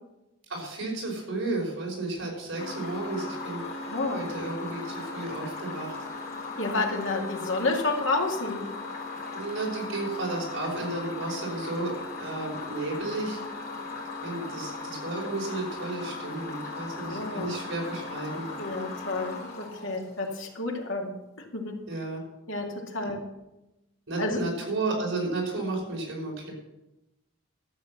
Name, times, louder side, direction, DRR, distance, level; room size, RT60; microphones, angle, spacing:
voice 1, 0.5-6.0 9.3-11.9 12.2-13.4 14.2-18.5 21.9-22.2 24.1-26.5, right 2 dB, 70° right, -2 dB, 5.4 m, -33 dB
sound 1, 2.6-20.6, left 3 dB, 45° left, 3.2 m, -38 dB
voice 2, 3.9-4.2 6.6-8.6 17.0-17.5 18.6-21.1 21.5-21.8 22.5-23.2 24.2-24.4, left 3 dB, 70° left, 1 dB, 2.2 m, -30 dB
12.5 x 8.4 x 6.6 m, 0.97 s
head